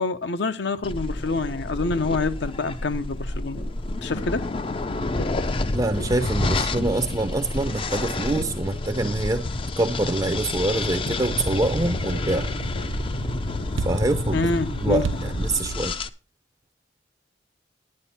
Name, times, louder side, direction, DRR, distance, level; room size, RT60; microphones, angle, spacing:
voice 1, 0.0-3.6 4.0-4.5 14.3-15.0, left 3 dB, 65° left, 0.8 m, -26 dB
sound 1, 0.8-16.1, left 2 dB, 30° left, 0.5 m, -29 dB
sound 2, 3.3-3.7 4.1-4.5 5.1-5.4 5.9-6.2 6.6-7.1 7.3-8.6 9.1-9.3 11.0-11.3 11.8-12.9 13.5-13.7, left 1 dB, 45° left, 1.0 m, -37 dB
voice 2, 5.7-9.5 9.8-12.5 13.8-14.5 14.8-16.0, right 2 dB, 20° right, 0.5 m, -25 dB
sound 3, 10.4-15.8, right 5 dB, 85° right, 0.4 m, -36 dB
11.0 x 9.2 x 4.1 m
head